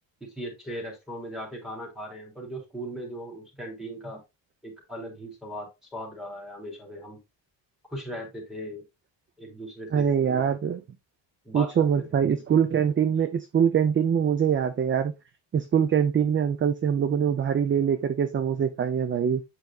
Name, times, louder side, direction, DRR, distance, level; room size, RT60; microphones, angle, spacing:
voice 1, 0.2-4.2 4.6-7.2 7.9-8.8 9.4-10.4 11.4-12.2, equal, ahead, 3.3 m, -38 dB
voice 2, 9.9-10.8 11.5-15.1 15.5-19.4, right 8 dB, 25° right, 0.5 m, -23 dB
8.3 x 5.1 x 2.4 m
cardioid pair, 135°, 46 cm